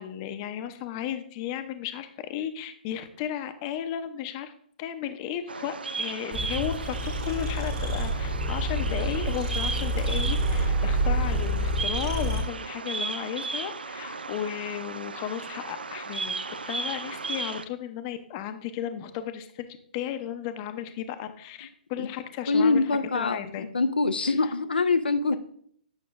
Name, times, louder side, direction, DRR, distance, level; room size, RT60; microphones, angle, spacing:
voice 1, 0.0-4.5 4.8-16.4 16.7-19.7 19.9-22.9 23.1-23.6 24.2-24.4, left 10 dB, 35° left, 9 dB, 0.6 m, -34 dB
Bird vocalization bird call bird song, 5.5-17.6, right 4 dB, 80° right, 0.5 m, -35 dB
sound 1, 6.3-12.4, right 1 dB, 35° right, 1.5 m, -28 dB
voice 2, 22.5-25.4, left 3 dB, 80° left, 9 dB, 0.4 m, -24 dB
8.4 x 5.9 x 2.5 m, 0.62 s
figure-of-eight pair, 125°, 5 cm